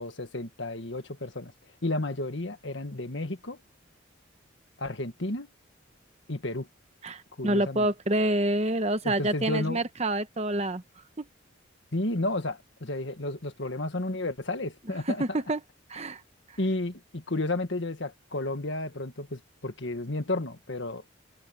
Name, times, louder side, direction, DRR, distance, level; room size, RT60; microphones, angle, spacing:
voice 1, 0.0-1.5 1.8-3.6 4.8-5.5 6.3-6.7 7.4-7.9 9.0-9.8 11.9-15.2 16.6-21.0, left 2 dB, 60° left, 1.7 m, -32 dB
voice 2, 7.0-10.8 11.2-11.3 15.2-15.6 15.9-16.2, right 1 dB, 30° right, 1.0 m, -27 dB
head